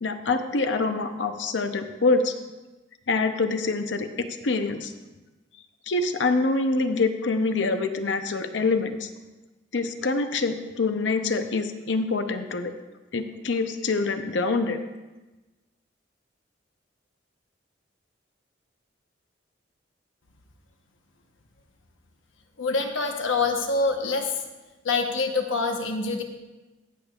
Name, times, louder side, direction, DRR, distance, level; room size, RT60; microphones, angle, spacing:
voice 1, 0.0-2.4 3.1-4.9 5.9-9.1 9.7-12.7 13.1-14.8, left 3 dB, 70° left, 8 dB, 0.7 m, -25 dB
voice 2, 22.6-24.4 24.8-26.2, left 3 dB, 90° left, 4 dB, 1.0 m, -25 dB
20.0 x 6.7 x 2.4 m, 1.2 s
head